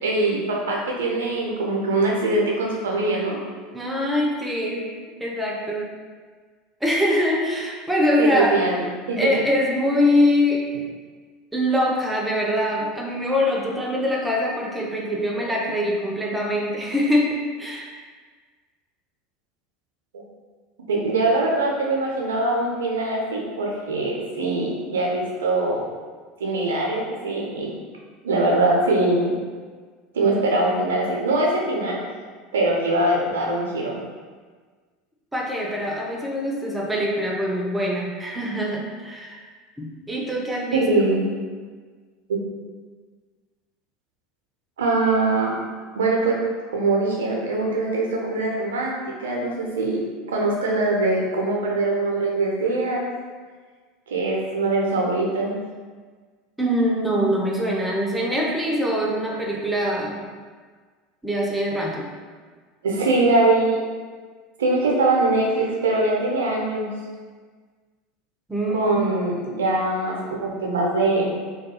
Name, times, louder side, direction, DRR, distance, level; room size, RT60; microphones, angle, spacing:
voice 1, 0.0-3.4 8.2-9.3 20.9-25.9 26.4-27.7 28.2-29.4 30.1-32.0 32.5-34.0 40.7-41.2 42.3-42.4 44.8-45.5 46.0-46.4 46.7-50.0 50.3-53.0 54.1-55.6 62.8-63.8 64.6-66.9 68.7-71.3, right 2 dB, 70° right, -2 dB, 0.5 m, -22 dB
voice 2, 3.7-4.9 5.2-5.9 6.8-8.6 9.2-10.6 11.5-17.9 35.3-39.4 39.8-40.9 56.6-60.2 61.2-62.1 68.5-68.9, left 1 dB, 10° right, -2 dB, 0.4 m, -23 dB
2.3 x 2.2 x 2.8 m, 1.5 s
figure-of-eight pair, 75°, 0 cm